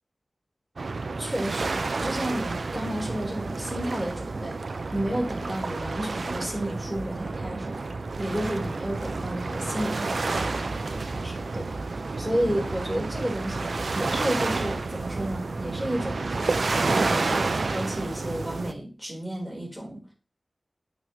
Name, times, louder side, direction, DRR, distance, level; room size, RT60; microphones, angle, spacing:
sound 1, 0.8-18.7, right 3 dB, 80° right, 0.6 m, -30 dB
voice 1, 1.2-4.6 4.9-7.8 8.2-20.1, equal, 5° left, -1 dB, 4.0 m, -32 dB
9.2 x 6.7 x 3.0 m, 0.30 s
wide cardioid pair, 55°, 0 cm